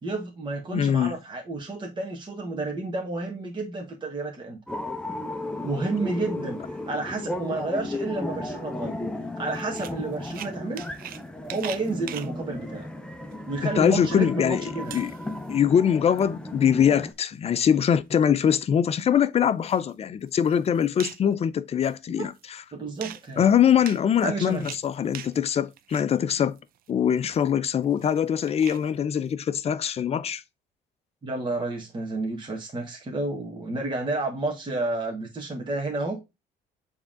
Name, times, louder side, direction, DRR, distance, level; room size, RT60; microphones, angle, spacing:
voice 1, 0.0-4.6 5.6-9.0 9.4-10.8 11.5-12.9 13.5-14.9 22.7-23.4 24.2-24.6 31.2-36.2, right 2 dB, 30° right, 1.6 m, -30 dB
voice 2, 0.7-1.1 13.6-15.1 15.5-22.3 23.4-26.6 26.9-30.4, left 8 dB, 40° left, 0.5 m, -23 dB
sound 1, 4.7-17.1, left 1 dB, 5° left, 0.8 m, -35 dB
sound 2, 9.5-11.2 11.5-12.3 13.3-13.4 13.8-13.9 14.3-14.4 14.8-15.5 15.9-16.3 17.0-17.6 18.1-18.2 18.5-18.6 19.5-19.9 20.3-21.3 21.8-22.4 23.0-25.4 25.7-26.1 26.6-28.9, right 11 dB, 60° right, 0.5 m, -42 dB
7.0 x 3.6 x 3.8 m
cardioid pair, 110°, 17 cm